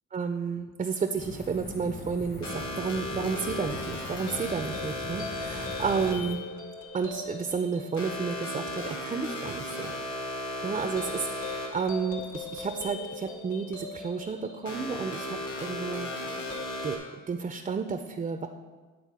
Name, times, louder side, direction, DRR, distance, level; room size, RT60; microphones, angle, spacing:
voice 1, 0.1-6.4 6.9-9.9 10.6-16.1 16.8-17.0 17.3-18.5, right 5 dB, 25° right, 6 dB, 0.4 m, -31 dB
sound 1, 1.2-6.3, left 2 dB, 35° left, 0.9 m, -41 dB
sound 2, 2.4-17.0, left 1 dB, 65° left, 1.6 m, -36 dB
9.1 x 3.8 x 4.7 m, 1.3 s
cardioid pair, 90°, 30 cm